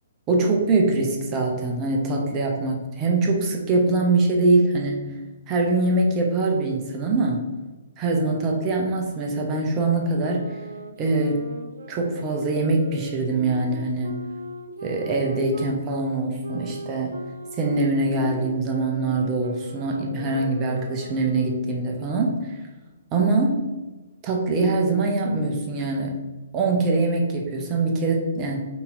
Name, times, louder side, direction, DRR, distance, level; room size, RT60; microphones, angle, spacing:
voice 1, 0.3-5.1 5.5-7.4 8.0-10.6 11.0-11.5 11.9-14.2 14.8-17.2 17.5-22.6 23.1-23.7 24.2-26.2 26.5-28.7, right 2 dB, 25° right, 1 dB, 0.7 m, -23 dB
sound 1, 10.2-15.8 16.4-21.9, right 3 dB, 65° right, 0.4 m, -39 dB
5.4 x 2.8 x 2.6 m, 1.2 s
figure-of-eight pair, 125°, 0 cm